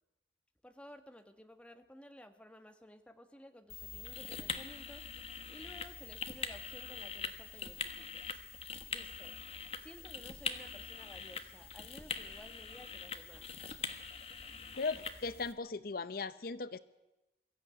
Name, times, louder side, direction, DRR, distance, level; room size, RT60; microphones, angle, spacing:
voice 1, 0.6-5.0 5.5-8.3 8.9-9.4 9.8-13.5, equal, 5° left, 7 dB, 1.4 m, -55 dB
sound 1, 3.7-15.5, left 5 dB, 35° left, 1.3 m, -43 dB
voice 2, 14.7-16.8, left 4 dB, 55° left, 15 dB, 0.7 m, -38 dB
22.5 x 14.5 x 9.3 m, 0.99 s
head